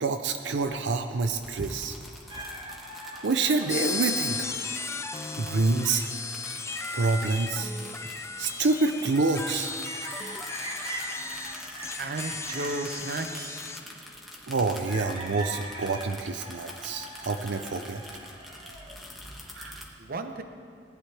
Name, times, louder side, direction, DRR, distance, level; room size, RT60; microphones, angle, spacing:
voice 1, 0.0-2.0 3.2-4.5 5.4-6.0 6.9-7.7 8.4-9.7 14.5-18.0 19.6-19.8, right 3 dB, 90° right, 7 dB, 0.6 m, -27 dB
sound 1, 1.3-19.9, left 1 dB, ahead, 1.5 m, -46 dB
sound 2, 2.3-14.3 14.8-19.9, right 1 dB, 35° right, 1.6 m, -43 dB
sound 3, 3.7-13.8, left 4 dB, 15° left, 0.5 m, -36 dB
voice 2, 12.0-13.8 20.0-20.4, right 2 dB, 55° right, 7 dB, 0.8 m, -34 dB
18.5 x 11.0 x 3.4 m, 2.4 s
head